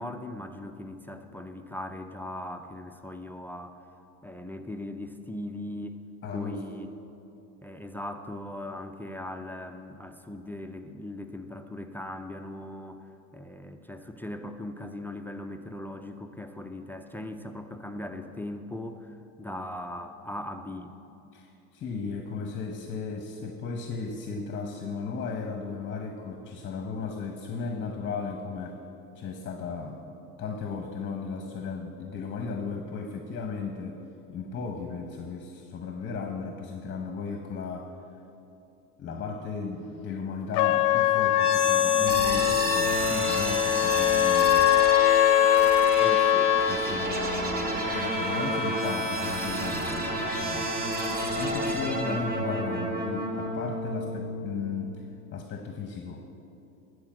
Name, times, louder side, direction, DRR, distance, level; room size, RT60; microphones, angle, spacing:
voice 1, 0.0-3.8 4.2-6.0 6.3-6.9 7.6-20.9 46.0-47.0 47.7-48.0 52.0-52.3, left 1 dB, 5° left, 7 dB, 0.3 m, -39 dB
voice 2, 6.2-6.6 21.3-28.8 29.1-30.0 30.4-34.0 34.3-37.9 39.0-44.7 46.7-50.7 51.3-54.9 55.3-56.2, left 5 dB, 30° left, 4 dB, 0.9 m, -35 dB
Trumpet, 40.5-46.8, left 15 dB, 60° left, 0.5 m, -22 dB
sound 1, 41.3-55.2, right 1 dB, 25° right, 1.8 m, -30 dB
11.5 x 4.9 x 7.7 m, 2.8 s
supercardioid pair, 100°, 38 cm